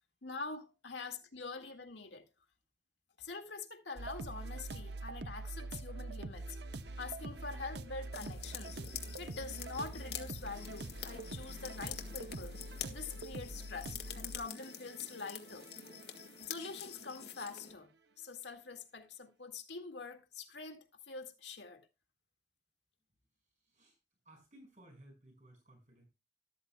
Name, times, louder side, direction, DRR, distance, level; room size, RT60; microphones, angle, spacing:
voice 1, 0.2-2.2 3.2-6.6 7.0-8.8 9.2-12.6 12.9-15.7 16.4-17.9 18.2-21.8, left 4 dB, 80° left, 1.9 m, -45 dB
sound 1, 4.0-16.7, right 2 dB, 70° right, 0.9 m, -45 dB
sound 2, 8.1-17.7, left 9 dB, 65° left, 1.9 m, -47 dB
voice 2, 23.5-24.0 24.2-26.1, right 1 dB, 45° right, 5.6 m, -59 dB
13.5 x 12.5 x 2.3 m
head